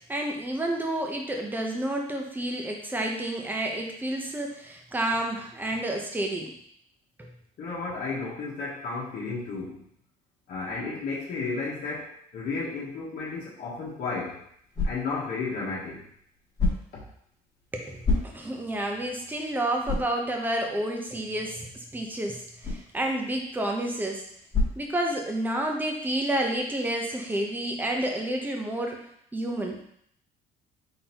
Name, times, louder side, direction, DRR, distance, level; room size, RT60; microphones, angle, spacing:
voice 1, 0.1-6.5 7.2-7.3 17.7-24.2 24.8-29.0 29.3-29.8, right 1 dB, 10° right, 1 dB, 0.7 m, -30 dB
voice 2, 7.6-9.9 10.5-14.4 14.8-16.1 16.9-17.0, left 4 dB, 60° left, -6 dB, 1.2 m, -33 dB
sound 1, 13.9-25.6, left 3 dB, 25° left, 1.7 m, -34 dB
3.8 x 3.8 x 2.9 m, 0.68 s
cardioid pair, 110°, 17 cm